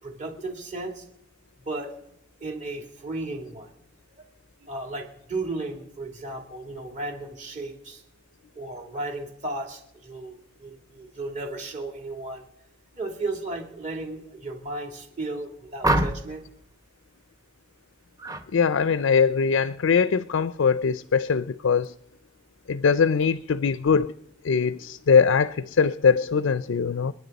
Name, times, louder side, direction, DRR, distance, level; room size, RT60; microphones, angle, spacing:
voice 1, 0.0-1.0 1.6-1.9 2.4-3.7 4.2-4.3 4.6-8.0 8.5-12.5 12.9-16.4, right 2 dB, 40° right, 3.0 m, -34 dB
sound 1, 15.8-16.4 18.2-18.5 18.8-19.2, right 1 dB, 20° right, 1.0 m, -26 dB
voice 2, 18.5-21.9 22.7-24.1 24.4-27.1, left 6 dB, 90° left, 0.5 m, -22 dB
29.0 x 9.8 x 4.1 m
head